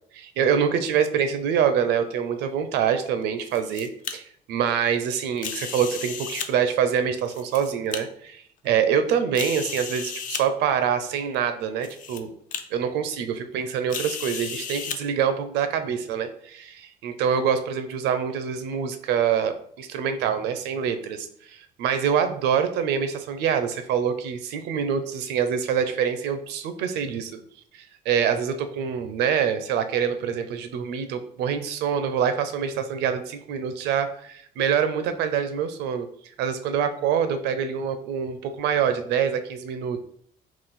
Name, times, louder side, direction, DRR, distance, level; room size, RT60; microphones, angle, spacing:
voice 1, 0.1-12.3 12.7-27.4 27.7-36.1 36.4-40.0, right 7 dB, 85° right, 9 dB, 0.5 m, -25 dB
sound 1, 3.2-4.1 5.4-6.5 7.2-8.0 8.6-8.7 9.3-10.4 11.3-11.4 11.8-12.2 12.5-12.6 13.9-15.0, left 7 dB, 50° left, 0.5 m, -34 dB
3.8 x 2.4 x 4.0 m, 0.63 s
cardioid pair, 110°, 17 cm